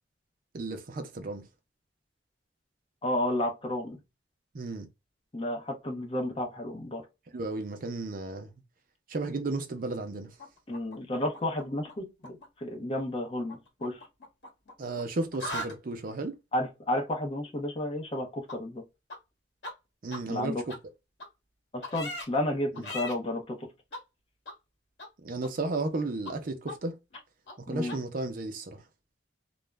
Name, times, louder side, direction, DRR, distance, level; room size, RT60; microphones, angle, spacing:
voice 1, 0.5-1.4 4.5-4.9 7.3-8.5 9.1-10.3 14.8-16.3 20.0-20.7 22.7-22.9 25.2-26.9 27.6-28.8, right 2 dB, 50° right, 0.5 m, -34 dB
voice 2, 3.0-4.0 5.3-7.0 10.7-14.0 16.5-18.8 20.3-20.6 21.7-23.7 27.7-28.0, left 1 dB, 30° left, 0.7 m, -32 dB
sound 1, 10.4-11.9 12.2-12.4 13.5-15.0 15.3-15.7 18.5-18.6 19.1-19.2 19.6-19.7 20.1-20.2 20.7-20.8 21.2-21.3 21.8-22.3 22.7-23.1 23.9-24.0 24.4-24.5 25.0-25.1 25.4-26.0 26.2-26.3 26.6-26.7 27.1-27.2 27.5-27.6 27.9-28.0, left 1 dB, 75° left, 1.0 m, -39 dB
2.4 x 2.1 x 3.1 m
head